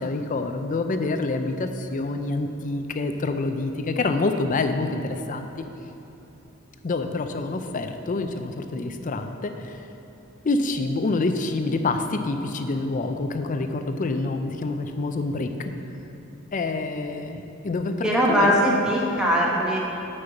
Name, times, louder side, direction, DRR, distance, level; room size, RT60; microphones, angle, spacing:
voice 1, 0.0-5.5 6.8-9.8 10.4-15.7 16.5-18.6, left 3 dB, 40° left, 7 dB, 0.5 m, -27 dB
voice 2, 18.0-19.8, equal, 5° right, -4 dB, 1.2 m, -21 dB
6.5 x 5.5 x 7.1 m, 2.9 s
head